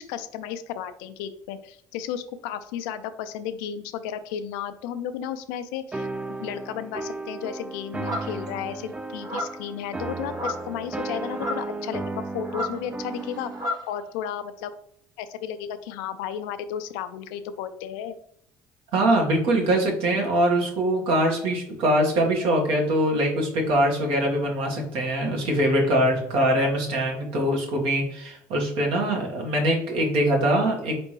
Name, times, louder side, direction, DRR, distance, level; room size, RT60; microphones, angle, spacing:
voice 1, 0.1-6.1 6.4-12.0 12.3-13.5 13.9-14.7 15.2-18.2, left 9 dB, 75° left, 10 dB, 0.4 m, -33 dB
sound 1, 5.9-13.7, right 2 dB, 10° right, 0.4 m, -34 dB
sound 2, 8.1-8.5 9.2-9.7 10.3-10.7 11.3-11.7 12.4-13.9, left 1 dB, 40° right, 1.4 m, -32 dB
voice 2, 18.9-30.9, right 1 dB, 65° right, 0 dB, 1.3 m, -23 dB
4.3 x 3.4 x 3.1 m, 0.72 s
hypercardioid pair, 65°, 10 cm